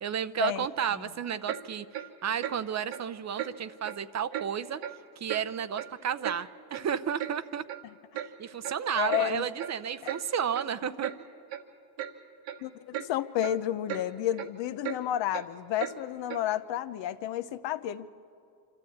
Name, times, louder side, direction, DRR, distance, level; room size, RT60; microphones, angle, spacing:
voice 1, 0.0-1.9 2.2-4.8 5.2-7.6 8.4-11.1, right 8 dB, 40° right, 12 dB, 0.6 m, -32 dB
Clock, 1.5-1.6 1.9-2.1 2.4-2.6 2.9-3.0 3.4-3.5 3.8-4.0 4.3-4.5 4.8-5.0 5.3-5.4 5.8-6.4 6.7-6.8 7.2-7.3 7.7-7.8 8.1-8.3 8.6-8.8 9.1-9.3 9.6-9.7 10.0-10.2 10.5-10.7 11.0-11.2 11.5-11.6 12.0-12.1 12.4-12.6 12.9-13.1 13.4-13.6 13.9-14.0 14.3-14.5 14.8-15.0 15.3-15.4 15.8-15.9 16.3-16.4, right 11 dB, 75° right, 1.5 m, -36 dB
voice 2, 8.9-9.5 10.0-10.1 12.6-18.1, left 12 dB, 70° left, 12 dB, 0.9 m, -31 dB
26.0 x 12.5 x 8.5 m, 2.5 s
cardioid pair, 90°, 45 cm